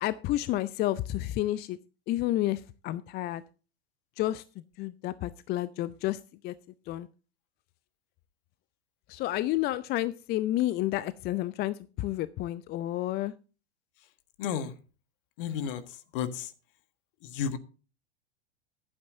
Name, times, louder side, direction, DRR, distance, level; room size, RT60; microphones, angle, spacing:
voice 1, 0.0-1.8 2.1-3.4 4.2-4.4 4.8-6.5 6.9-7.1 9.1-13.3, left 15 dB, 30° left, 16 dB, 0.5 m, -30 dB
voice 2, 14.4-14.7 15.4-15.8 16.1-16.5 17.3-17.6, left 8 dB, 55° left, 11 dB, 1.6 m, -31 dB
14.5 x 11.5 x 2.7 m, 0.35 s
figure-of-eight pair, 90°, 33 cm